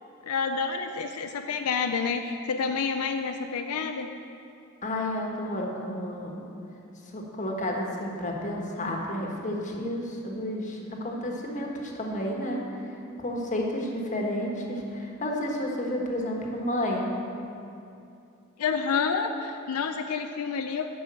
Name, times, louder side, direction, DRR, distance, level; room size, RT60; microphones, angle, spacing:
voice 1, 0.2-4.1 18.6-20.9, left 5 dB, 85° left, 6 dB, 0.5 m, -29 dB
voice 2, 4.8-6.4 7.1-12.6 13.2-17.1, left 1 dB, 35° left, 0 dB, 1.4 m, -31 dB
11.0 x 5.5 x 7.5 m, 2.6 s
head